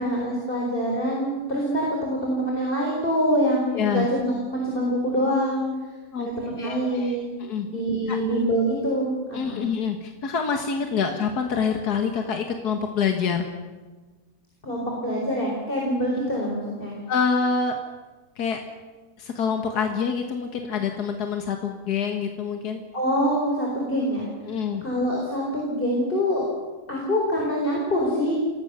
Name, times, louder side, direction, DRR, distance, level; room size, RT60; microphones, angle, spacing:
voice 1, 0.0-5.7 6.2-7.3 7.7-9.6 14.6-17.0 22.9-24.3 24.8-26.4 26.9-28.4, equal, 35° left, -2 dB, 4.5 m, -25 dB
voice 2, 3.7-4.1 6.1-6.3 6.6-7.7 8.1-8.2 9.3-13.5 17.1-17.8 18.4-18.6 19.2-22.8 24.5-24.8, left 6 dB, 80° left, 4 dB, 2.0 m, -26 dB
27.0 x 18.5 x 6.8 m, 1.3 s
omnidirectional pair, 1.6 m